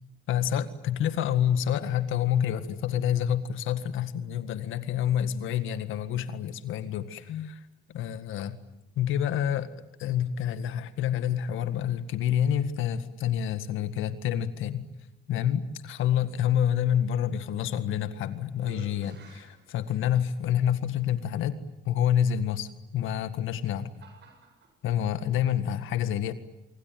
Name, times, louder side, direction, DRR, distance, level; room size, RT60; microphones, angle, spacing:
voice 1, 0.3-7.6 7.9-8.6 9.0-9.7 10.0-14.9 15.3-21.6 21.9-23.9 24.8-26.3, left 10 dB, 90° left, 12 dB, 1.8 m, -28 dB
sound 1, 17.7-18.2 18.5-20.4 21.2-21.3 23.0-24.7, right 4 dB, 60° right, 7.7 m, -53 dB
26.0 x 23.5 x 9.4 m, 0.89 s
cardioid pair, 90°, 20 cm